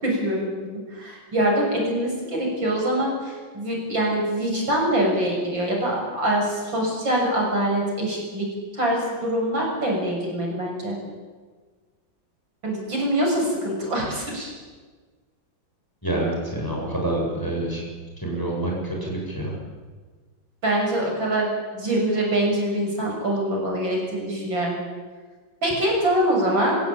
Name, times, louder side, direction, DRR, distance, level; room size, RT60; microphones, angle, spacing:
voice 1, 0.0-8.5 8.7-11.0 12.6-14.5 20.6-24.8 25.6-26.8, right 1 dB, 70° right, -1 dB, 7.4 m, -24 dB
voice 2, 16.0-17.8 18.2-19.5, right 1 dB, 10° left, -2 dB, 7.6 m, -27 dB
26.5 x 16.5 x 8.9 m, 1.4 s
omnidirectional pair, 2.1 m